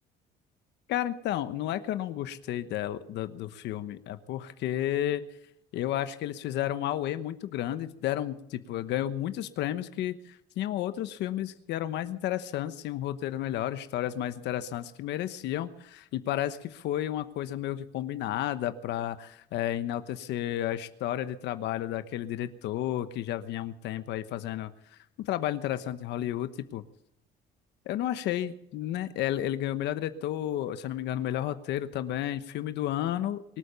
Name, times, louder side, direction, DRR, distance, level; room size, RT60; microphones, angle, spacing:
voice 1, 0.9-5.3 5.7-24.7 25.2-26.8 27.9-33.6, left 12 dB, 75° left, 11 dB, 1.1 m, -32 dB
24.0 x 8.7 x 6.9 m, 0.77 s
cardioid pair, 135°, 18 cm